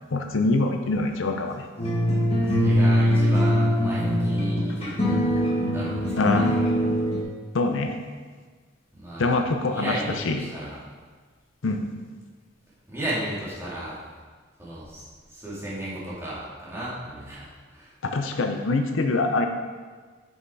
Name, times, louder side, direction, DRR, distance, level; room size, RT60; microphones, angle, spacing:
voice 1, 0.1-1.7 5.3-5.5 6.2-6.6 7.5-8.0 9.2-10.4 11.6-11.9 18.0-19.5, left 3 dB, 75° left, 5 dB, 0.6 m, -24 dB
sound 1, 1.8-7.2, equal, 30° left, 1.6 m, -22 dB
voice 2, 2.3-5.4 5.7-6.6 8.9-9.3 9.6-10.8 12.9-14.0 14.6-15.0 15.3-17.9, right 1 dB, 15° right, -8 dB, 2.2 m, -34 dB
6.3 x 5.5 x 4.7 m, 1.5 s
head